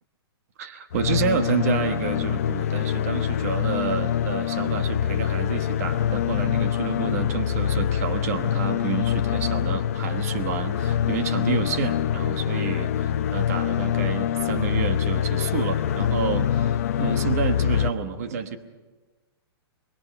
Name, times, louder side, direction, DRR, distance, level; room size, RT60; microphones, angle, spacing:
voice 1, 0.6-18.6, right 6 dB, 35° right, 9 dB, 1.2 m, -29 dB
sound 1, 0.9-17.9, left 10 dB, 35° left, 0.6 m, -25 dB
23.5 x 22.5 x 5.8 m, 1.3 s
hypercardioid pair, 175°, 14 cm